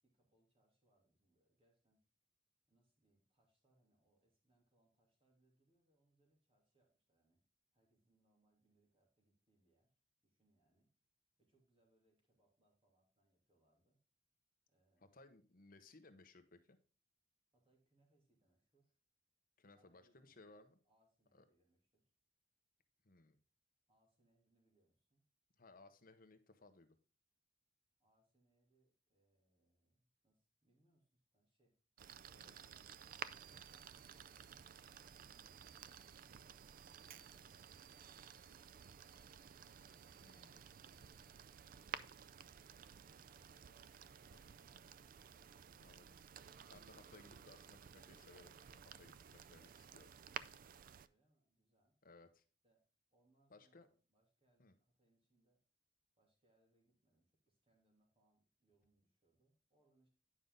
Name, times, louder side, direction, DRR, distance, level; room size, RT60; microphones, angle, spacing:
voice 1, 0.0-2.0 2.7-7.4 7.7-9.9 10.2-10.9 11.4-14.0 14.7-15.2 17.5-19.0 19.7-22.1 23.9-25.2 28.0-31.8 43.3-44.8 51.0-52.0 52.6-52.8 53.1-55.6 56.1-60.1, right 1 dB, 30° right, 0 dB, 2.8 m, -80 dB
voice 2, 15.1-16.8 19.6-20.8 21.3-21.4 23.0-23.4 25.6-27.0 32.3-32.5 40.2-40.6 44.3-44.4 45.8-46.2 46.7-50.1 52.0-52.4 53.5-53.9 54.6-54.7, left 3 dB, 50° left, 8 dB, 1.0 m, -63 dB
sound 1, 32.0-51.1, right 8 dB, 50° right, 0.4 m, -54 dB
9.7 x 5.4 x 3.8 m, 0.37 s
head